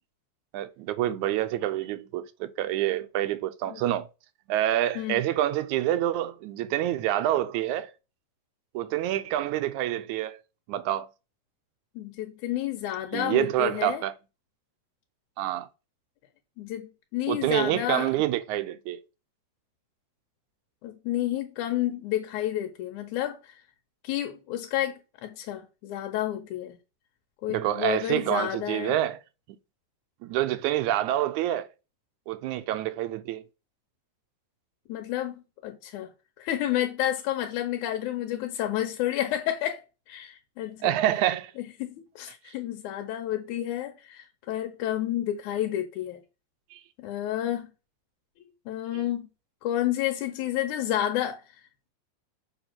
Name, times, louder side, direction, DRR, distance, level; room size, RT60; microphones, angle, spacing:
voice 1, 0.5-4.1 4.5-7.9 8.7-10.4 10.7-11.1 13.1-14.1 15.4-15.7 17.3-19.0 27.5-29.2 30.2-31.7 32.3-33.4 40.8-41.5 46.7-46.8 48.9-49.0, right 13 dB, 90° right, 2.0 m, -27 dB
voice 2, 12.0-14.0 16.6-18.1 20.8-23.6 24.0-26.8 27.4-29.0 34.9-36.1 36.4-40.9 41.6-46.2 47.0-47.7 48.4-49.3 49.6-51.4, left 12 dB, 85° left, 2.3 m, -30 dB
7.0 x 3.1 x 5.9 m
omnidirectional pair, 3.4 m